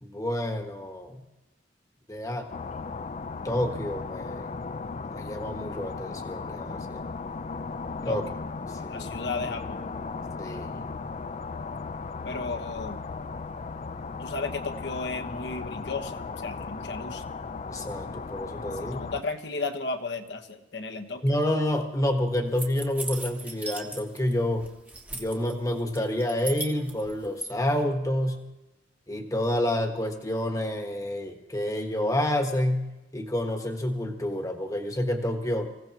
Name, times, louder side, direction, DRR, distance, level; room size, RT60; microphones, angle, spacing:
voice 1, 0.0-1.2 2.1-2.5 3.4-4.5 5.1-7.0 8.0-8.2 8.8-9.1 10.4-10.9 17.7-19.0 21.2-24.7 25.1-28.4 29.1-32.9 33.1-35.7, left 1 dB, 20° left, 4 dB, 1.4 m, -28 dB
sound 1, 2.5-19.2, left 4 dB, 35° left, 0.4 m, -36 dB
voice 2, 8.9-9.8 12.2-13.0 14.2-17.2 18.8-21.2, left 3 dB, 65° left, 7 dB, 1.3 m, -34 dB
sound 2, 22.6-24.3 24.6-25.5 25.9-27.5, right 2 dB, 10° right, 1.3 m, -37 dB
25.5 x 16.0 x 3.0 m, 0.98 s
head